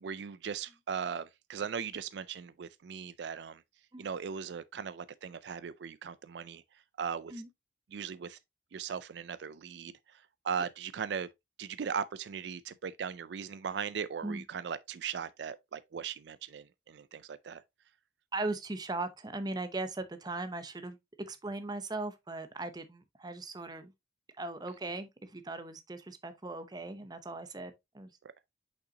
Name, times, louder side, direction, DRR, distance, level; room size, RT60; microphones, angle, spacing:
voice 1, 0.0-3.6 4.0-6.6 7.0-7.4 7.9-8.4 8.7-11.3 11.6-17.6, right 7 dB, 70° right, 0.4 m, -38 dB
voice 2, 18.3-21.0 21.3-23.9 24.4-28.1, right 2 dB, 20° right, 0.7 m, -38 dB
6.5 x 5.5 x 2.8 m
head